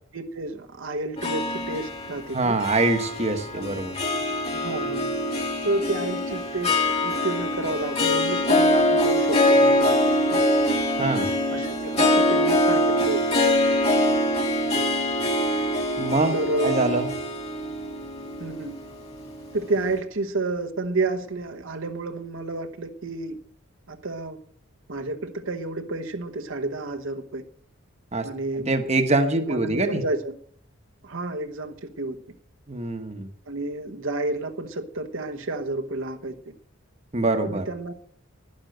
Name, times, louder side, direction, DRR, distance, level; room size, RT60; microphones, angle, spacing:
voice 1, 0.1-2.6 3.5-3.9 4.5-5.1 5.6-10.4 11.5-13.4 16.3-16.8 18.4-18.7 19.5-23.4 23.9-24.4 24.9-27.4 28.2-28.7 29.3-30.3 31.0-32.2 33.5-36.3 37.4-37.9, right 2 dB, 70° right, 5 dB, 1.1 m, -30 dB
Harp, 1.2-19.6, left 1 dB, 30° left, 2.3 m, -23 dB
voice 2, 2.3-3.9 11.0-11.3 16.0-16.3 16.6-17.1 28.1-28.3 28.7-30.0 32.7-33.3 37.1-37.6, right 2 dB, 30° right, 7 dB, 1.1 m, -24 dB
11.5 x 10.5 x 7.7 m, 0.62 s
head